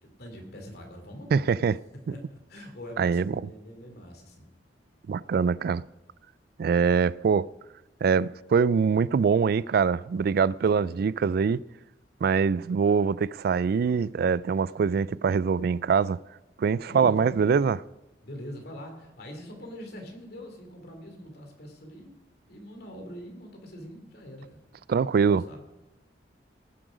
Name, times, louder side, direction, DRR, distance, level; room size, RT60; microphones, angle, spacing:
voice 1, 0.0-1.5 2.1-4.5 10.7-10.9 16.8-17.8 18.2-22.1 22.5-24.6 25.2-25.6, equal, 60° left, 2.7 m, -43 dB
voice 2, 1.3-1.8 3.0-3.4 5.1-5.8 6.6-7.5 8.0-11.6 12.2-16.2 16.6-17.8 24.9-25.4, right 6 dB, 60° right, 0.3 m, -23 dB
18.0 x 7.6 x 5.1 m
head